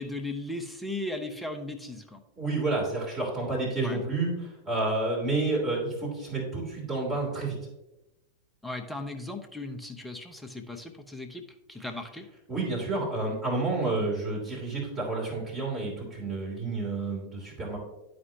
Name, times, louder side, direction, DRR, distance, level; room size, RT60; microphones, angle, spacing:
voice 1, 0.0-2.2 3.8-4.0 8.6-11.4 11.7-12.3, left 2 dB, 5° left, 5 dB, 0.8 m, -37 dB
voice 2, 2.4-7.6 12.5-17.8, right 2 dB, 25° right, -5 dB, 2.9 m, -30 dB
11.0 x 5.2 x 2.8 m, 0.96 s
figure-of-eight pair, 90°, 0 cm